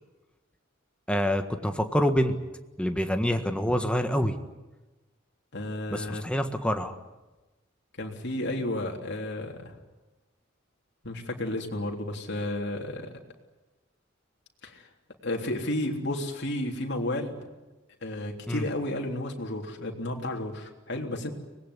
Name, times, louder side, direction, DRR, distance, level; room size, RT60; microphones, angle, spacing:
voice 1, 1.1-2.4 2.8-4.3 5.9-6.9 18.5-18.6, equal, 5° left, 6 dB, 1.6 m, -26 dB
voice 2, 5.5-6.2 8.0-9.8 11.0-13.1 14.6-14.9 15.2-17.4 18.0-21.3, left 1 dB, 60° left, 1 dB, 3.5 m, -32 dB
25.0 x 20.0 x 9.9 m, 1.1 s
head